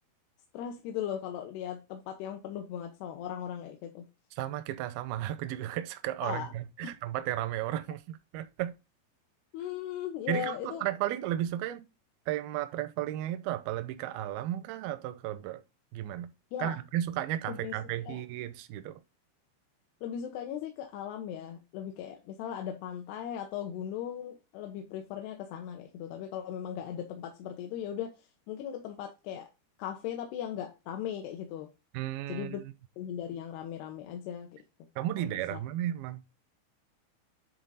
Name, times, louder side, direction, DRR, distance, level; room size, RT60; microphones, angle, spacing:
voice 1, 0.5-4.1 6.2-6.5 6.8-6.9 9.5-10.8 16.5-16.8 17.5-17.7 18.1-18.2 20.0-29.5 29.8-31.7 32.3-32.6 33.0-34.6 35.2-35.6, left 9 dB, 80° left, 3.0 m, -38 dB
voice 2, 4.4-8.7 10.3-11.9 12.3-15.6 15.9-16.3 16.6-19.0 31.9-32.6 35.0-36.2, right 13 dB, 80° right, 2.4 m, -34 dB
10.5 x 4.0 x 3.9 m
omnidirectional pair, 4.7 m